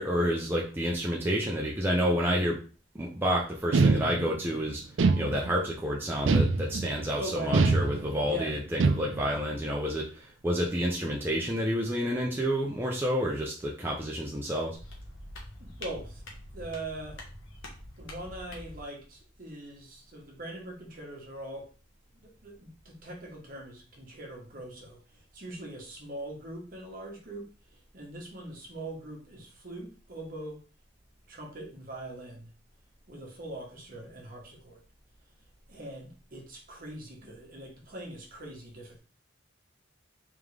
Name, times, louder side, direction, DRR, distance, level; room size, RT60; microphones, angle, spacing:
voice 1, 0.0-2.6 2.9-4.8 5.2-14.8, equal, 10° right, -3 dB, 0.6 m, -29 dB
sound 1, 3.7-4.5 5.0-5.7 6.3-7.0 7.5-8.3 8.8-9.4, right 3 dB, 75° right, 0.4 m, -24 dB
voice 2, 7.1-7.6 8.2-8.6 15.6-16.2 16.5-17.3 18.0-21.7 22.1-30.6 31.3-32.5 33.1-34.8 35.7-39.0, right 1 dB, 50° right, 0 dB, 1.2 m, -42 dB
sound 2, 14.7-18.8, left 1 dB, 85° left, 1.2 m, -45 dB
3.6 x 3.6 x 3.3 m, 0.37 s
head